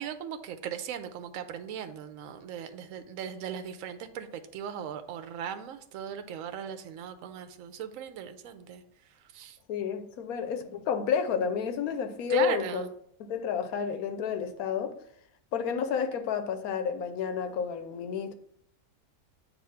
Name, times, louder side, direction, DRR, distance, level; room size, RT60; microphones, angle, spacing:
voice 1, 0.0-8.8 9.3-9.6 12.3-12.9, right 8 dB, 70° right, 1.0 m, -38 dB
voice 2, 9.7-12.8 13.2-15.0 15.5-18.4, left 7 dB, 80° left, 1.2 m, -30 dB
7.9 x 2.7 x 5.6 m
omnidirectional pair, 1.5 m